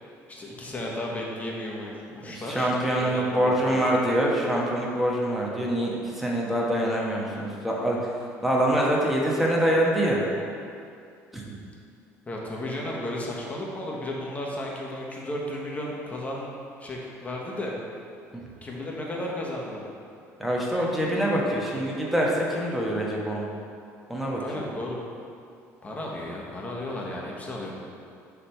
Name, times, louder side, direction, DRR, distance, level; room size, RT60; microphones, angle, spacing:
voice 1, 0.3-2.7 3.0-4.0 12.3-16.5 16.8-17.7 18.6-19.8 24.4-25.0 25.8-27.7, left 1 dB, 25° left, -3 dB, 1.2 m, -34 dB
voice 2, 2.3-8.1 8.4-10.2 11.3-11.4 20.4-23.5 24.1-24.6, right 1 dB, 5° right, -4 dB, 1.2 m, -25 dB
6.4 x 3.5 x 4.4 m, 2.4 s
supercardioid pair, 90°, 6 cm